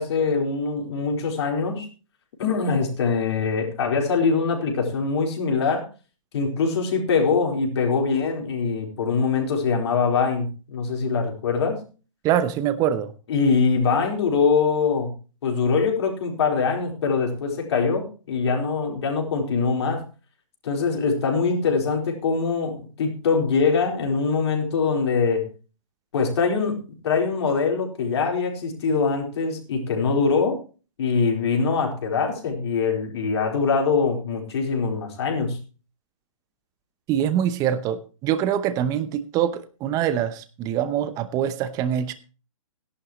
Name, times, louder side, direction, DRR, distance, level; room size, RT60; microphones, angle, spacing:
voice 1, 0.0-1.9 2.4-5.8 6.3-11.8 13.3-15.1 15.4-20.0 20.6-25.5 26.1-30.6 31.0-35.6, left 5 dB, 55° left, 2 dB, 4.2 m, -23 dB
voice 2, 12.2-13.1 37.1-42.1, right 10 dB, 20° right, 13 dB, 0.8 m, -24 dB
17.0 x 11.0 x 3.1 m, 0.34 s
hypercardioid pair, 140°, 17 cm